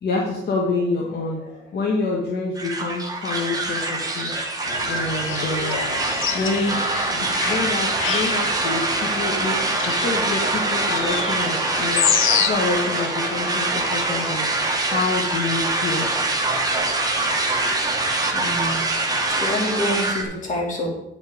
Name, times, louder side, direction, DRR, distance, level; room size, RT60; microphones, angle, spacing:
voice 1, 0.0-4.3 4.9-5.8 6.3-6.8 7.1-14.5 14.8-16.1, left 3 dB, 55° left, -2 dB, 1.8 m, -27 dB
sound 1, 2.5-20.2, right 2 dB, 20° right, 1.8 m, -24 dB
sound 2, 4.7-12.5, left 9 dB, 80° left, 0.8 m, -28 dB
voice 2, 18.3-18.9 19.3-20.9, left 1 dB, 40° left, -1 dB, 3.1 m, -26 dB
8.9 x 5.5 x 5.2 m, 0.85 s
cardioid pair, 90°, 20 cm